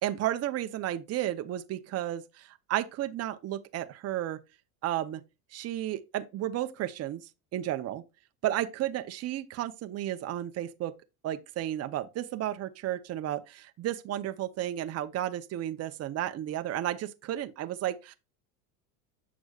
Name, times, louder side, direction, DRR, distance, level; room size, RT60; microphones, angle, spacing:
voice 1, 0.0-4.4 4.8-5.2 5.5-7.2 7.5-8.0 8.4-10.9 11.2-18.1, right 13 dB, 35° right, 0.7 m, -33 dB
8.0 x 6.0 x 2.3 m
supercardioid pair, 115°, 43 cm